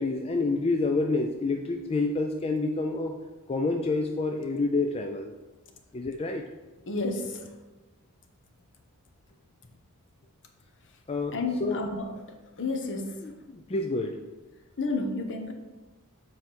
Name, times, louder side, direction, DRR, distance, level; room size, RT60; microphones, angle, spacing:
voice 1, 0.0-3.2 3.5-5.3 5.9-6.4 11.1-11.3 11.6-11.8 13.2-14.2, left 3 dB, 25° left, 3 dB, 0.4 m, -28 dB
voice 2, 6.9-7.5 11.3-13.3 14.8-15.5, left 3 dB, 55° left, 4 dB, 0.9 m, -31 dB
7.3 x 4.6 x 4.5 m, 1.2 s
head